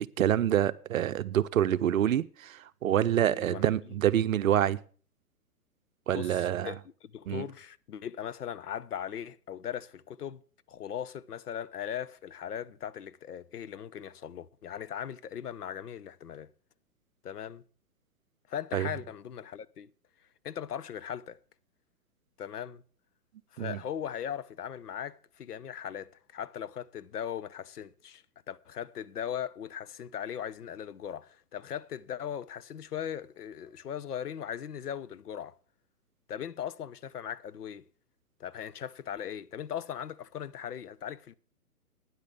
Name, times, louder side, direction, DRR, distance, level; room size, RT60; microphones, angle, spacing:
voice 1, 0.2-4.8 6.1-6.7 7.3-7.5 18.7-18.9 23.6-23.8, right 11 dB, 60° right, 0.7 m, -27 dB
voice 2, 3.3-3.6 6.1-10.4 10.7-16.5 17.2-17.6 18.5-19.9 20.4-21.4 22.4-22.8 23.5-35.5 36.3-37.8 38.4-41.3, left 9 dB, 75° left, 0.8 m, -39 dB
9.7 x 8.3 x 6.6 m
hypercardioid pair, 130°, 46 cm